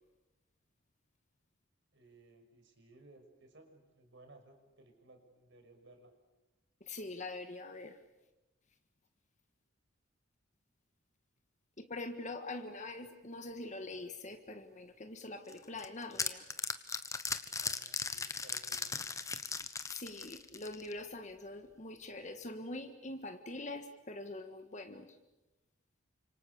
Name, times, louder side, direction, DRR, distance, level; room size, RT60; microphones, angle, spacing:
voice 1, 1.9-6.1 17.5-19.0, right 2 dB, 60° right, 5 dB, 6.0 m, -60 dB
voice 2, 6.8-8.0 11.8-16.5 19.9-25.1, left 2 dB, 35° left, 6 dB, 1.7 m, -44 dB
sound 1, 15.5-21.0, left 4 dB, 15° left, 1.2 m, -38 dB
30.0 x 26.5 x 6.9 m, 1.0 s
head